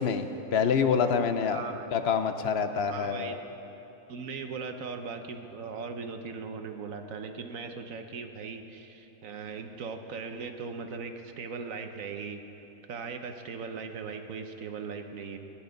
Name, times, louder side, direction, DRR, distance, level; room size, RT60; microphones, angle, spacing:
voice 1, 0.0-1.6 1.9-3.4, left 6 dB, 55° left, 8 dB, 0.8 m, -26 dB
voice 2, 1.5-1.8 2.8-3.4 4.1-12.4 12.9-15.4, right 5 dB, 70° right, 6 dB, 1.2 m, -39 dB
16.5 x 11.0 x 5.2 m, 2.9 s
omnidirectional pair, 1.5 m